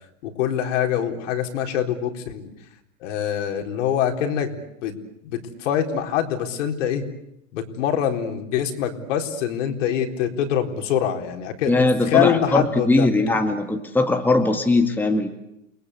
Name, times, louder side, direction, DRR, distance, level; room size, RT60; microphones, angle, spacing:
voice 1, 0.2-2.5 3.0-4.9 5.2-7.0 7.5-13.1, left 9 dB, 60° left, 3 dB, 4.2 m, -24 dB
voice 2, 11.7-15.3, left 2 dB, 5° left, 4 dB, 2.0 m, -20 dB
29.5 x 21.0 x 8.4 m, 0.81 s
hypercardioid pair, 120°, 41 cm